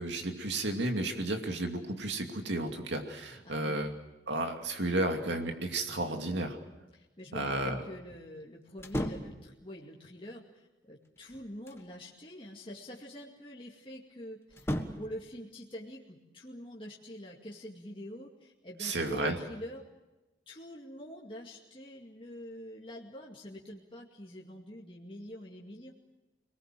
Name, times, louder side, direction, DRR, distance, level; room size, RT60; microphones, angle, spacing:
voice 1, 0.0-3.9 4.3-6.6 7.3-7.8 18.8-19.4, right 2 dB, 85° right, 4 dB, 2.6 m, -32 dB
voice 2, 3.4-3.8 6.9-14.7 15.0-19.8 20.5-25.9, equal, 30° left, -2 dB, 2.3 m, -45 dB
sound 1, 8.8-9.4 11.1-11.9 14.5-15.2, equal, 15° left, 1.4 m, -35 dB
26.5 x 19.5 x 7.6 m, 1.1 s
head